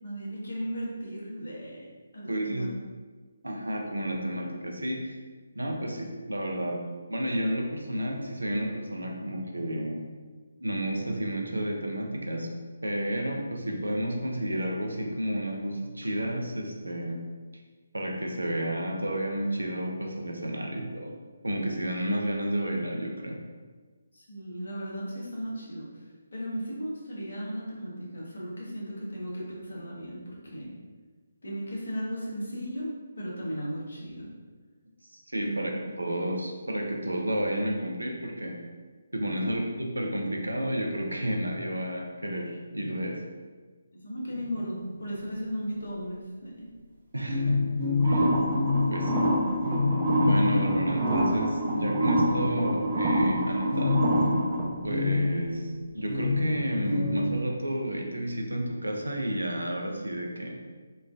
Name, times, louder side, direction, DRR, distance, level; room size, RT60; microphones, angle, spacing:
voice 1, 0.0-1.9 2.1-2.7 24.1-25.9 26.3-30.7 31.4-34.3 35.4-35.7 39.3-39.5 43.9-46.7, equal, 60° left, -5 dB, 0.9 m, -36 dB
voice 2, 2.3-2.7 3.4-5.2 5.5-6.8 7.1-10.0 10.6-12.5 12.8-17.2 17.9-21.1 21.4-23.4 35.1-35.7 36.0-38.6 39.1-43.2 47.1-47.6 48.0-48.3 48.9-49.3 50.2-54.1 54.8-55.7 55.9-60.6, right 1 dB, 75° right, 1 dB, 0.5 m, -31 dB
sound 1, 44.3-45.0 47.3-53.0 53.7-57.3, left 3 dB, 40° right, 0.9 m, -29 dB
sound 2, 48.0-54.6, right 1 dB, 25° right, 0.5 m, -26 dB
3.0 x 2.4 x 2.4 m, 1.4 s
figure-of-eight pair, 145°, 0 cm